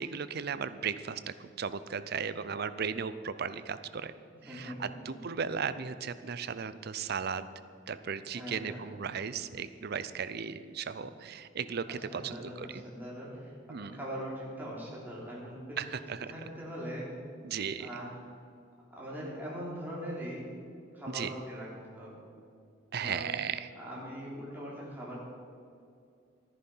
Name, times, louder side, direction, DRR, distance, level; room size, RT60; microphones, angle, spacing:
voice 1, 0.0-4.1 4.4-7.5 7.9-12.8 13.7-14.0 15.8-16.3 17.4-17.9 21.1-21.3 22.9-23.7, right 6 dB, 55° right, 13 dB, 0.6 m, -36 dB
voice 2, 4.5-5.2 8.2-8.8 11.9-13.5 13.8-15.9 16.3-17.1 17.8-18.1 18.9-20.5 20.9-22.2 23.0-23.3 23.7-25.2, equal, 10° right, -6 dB, 3.4 m, -41 dB
13.5 x 10.5 x 5.6 m, 2.4 s
head